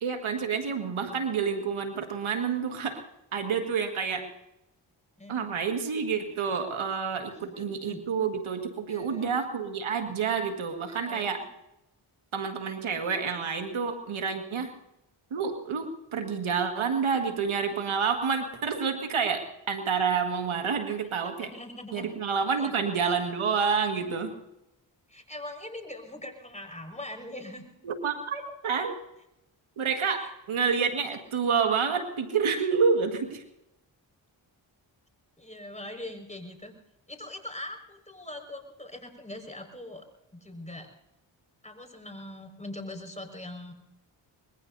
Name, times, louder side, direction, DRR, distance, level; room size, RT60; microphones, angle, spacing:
voice 1, 0.0-3.0 3.3-4.3 5.3-11.5 12.3-14.7 15.3-21.5 21.9-24.3 27.8-29.0 29.8-33.4, right 6 dB, 80° right, 5 dB, 1.9 m, -28 dB
voice 2, 7.3-8.0 8.9-9.3 10.9-11.5 14.6-14.7 21.2-22.1 22.6-22.7 25.1-27.7 30.2-30.3 35.4-36.7 37.1-40.0 40.3-40.9 41.6-43.7, left 1 dB, 15° left, 4 dB, 5.3 m, -42 dB
25.0 x 21.0 x 2.7 m, 0.86 s
cardioid pair, 40°, 48 cm